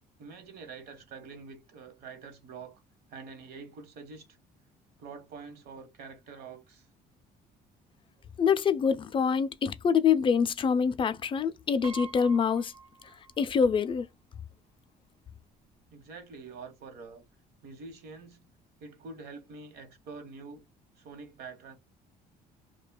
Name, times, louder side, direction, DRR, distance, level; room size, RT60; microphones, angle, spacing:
voice 1, 0.2-2.8 3.1-4.3 5.0-6.9 15.9-17.2 17.6-18.4 18.8-20.7 21.0-21.8, right 4 dB, 70° right, 1.0 m, -46 dB
voice 2, 8.4-12.7 13.4-14.1, left 6 dB, 30° left, 0.4 m, -25 dB
Piano, 11.8-13.7 14.0-14.1 15.2-15.3 15.6-15.9, right 5 dB, 35° right, 0.5 m, -46 dB
2.7 x 2.2 x 2.3 m
cardioid pair, 110°, 17 cm